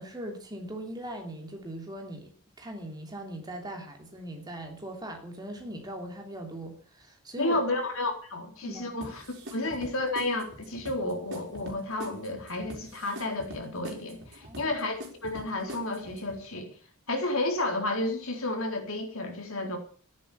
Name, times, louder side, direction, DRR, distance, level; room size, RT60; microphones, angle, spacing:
voice 1, 0.0-2.3 2.6-7.6 8.6-8.9 14.4-14.7, right 1 dB, 20° right, 3 dB, 3.1 m, -40 dB
voice 2, 7.4-16.7 17.1-19.8, left 2 dB, 70° left, 3 dB, 4.0 m, -31 dB
sound 1, 9.0-16.4, equal, 50° right, 4.8 m, -45 dB
14.5 x 11.0 x 7.1 m, 0.42 s
head